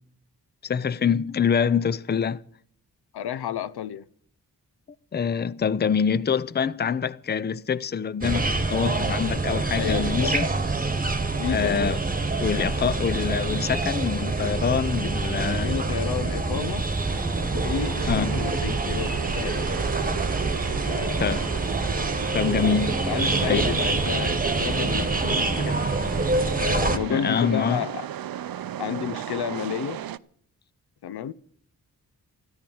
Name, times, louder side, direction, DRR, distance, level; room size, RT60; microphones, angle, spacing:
voice 1, 0.6-2.4 5.1-10.5 11.5-12.0 12.4-15.7 18.1-18.3 21.2-21.5 22.3-23.1 23.4-23.7 27.1-27.8, left 7 dB, 25° left, 0.5 m, -25 dB
voice 2, 3.1-4.1 9.7-10.4 11.4-11.8 15.5-16.9 17.5-19.7 20.9-21.2 23.1-26.0 26.6-28.1 28.8-30.0 31.0-31.3, left 9 dB, 85° left, 0.7 m, -31 dB
sound 1, 8.2-27.0, right 3 dB, 20° right, 1.4 m, -26 dB
sound 2, 17.0-30.2, right 11 dB, 65° right, 0.6 m, -35 dB
14.0 x 10.5 x 7.1 m
cardioid pair, 60°, 38 cm